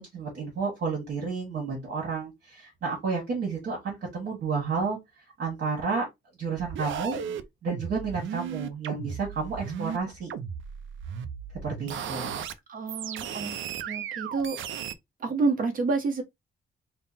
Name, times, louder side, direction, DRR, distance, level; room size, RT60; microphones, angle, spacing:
voice 1, 0.0-6.1 6.4-7.2 7.6-10.3 11.6-12.3, right 5 dB, 60° right, 1.6 m, -31 dB
sound 1, 6.6-10.0 10.3-12.5 12.9-14.9, right 8 dB, 80° right, 0.5 m, -35 dB
voice 2, 12.7-13.5 13.8-14.6 15.2-16.2, right 4 dB, 45° right, 1.0 m, -28 dB
3.7 x 2.2 x 4.1 m
wide cardioid pair, 160°, 20 cm